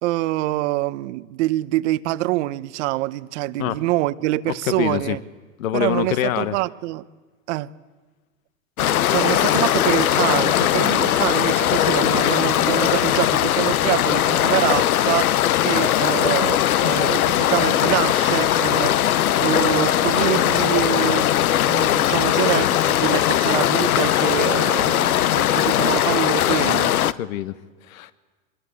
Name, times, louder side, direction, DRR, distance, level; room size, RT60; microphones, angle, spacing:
voice 1, 0.0-5.2 5.7-7.0 7.5-7.7 9.1-21.3 21.7-26.9, right 17 dB, 55° right, 0.9 m, -25 dB
voice 2, 4.5-5.2 5.6-6.5 26.9-27.5 27.9-28.1, left 11 dB, 70° left, 1.3 m, -25 dB
sound 1, 8.8-27.1, left 12 dB, 85° left, 0.8 m, -19 dB
24.0 x 21.5 x 8.3 m
hypercardioid pair, 120°, 42 cm